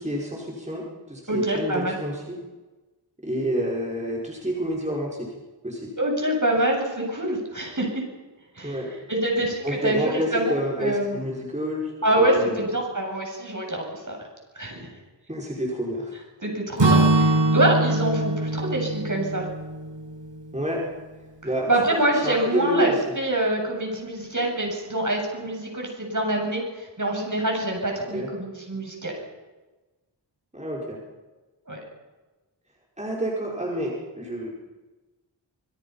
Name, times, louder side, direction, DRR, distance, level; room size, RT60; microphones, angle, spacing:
voice 1, 0.0-2.4 3.2-5.3 5.6-5.9 8.6-8.9 9.6-12.6 15.3-16.2 20.5-20.8 21.4-23.1 28.1-28.3 30.5-31.0 33.0-34.5, equal, 15° right, -3 dB, 5.3 m, -29 dB
voice 2, 1.3-2.0 6.0-8.0 8.5-8.8 9.1-11.2 12.0-14.2 14.5-14.9 16.4-19.5 21.7-29.1 31.7-31.8, right 1 dB, 40° right, 0 dB, 8.0 m, -25 dB
Acoustic guitar / Strum, 16.8-20.7, right 2 dB, 70° right, 6.7 m, -23 dB
26.0 x 22.0 x 5.7 m, 1.2 s
wide cardioid pair, 45°, 46 cm